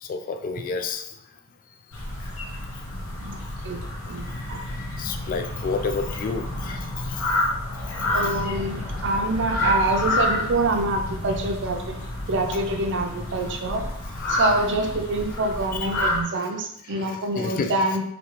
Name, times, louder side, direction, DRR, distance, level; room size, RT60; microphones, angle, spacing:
voice 1, 0.0-1.0 4.1-4.4 5.0-6.9 7.1-7.2 13.5-13.9 14.2-14.4 15.7-16.1 16.4-17.7, left 4 dB, 40° left, 6 dB, 0.3 m, -31 dB
sound 1, 1.9-16.2, left 2 dB, 65° left, 1.0 m, -29 dB
voice 2, 3.2-3.8 4.1-4.6 8.1-12.0 12.3-13.8 14.3-18.0, right 2 dB, 55° right, 4 dB, 0.6 m, -26 dB
4.3 x 2.9 x 3.1 m, 0.73 s
head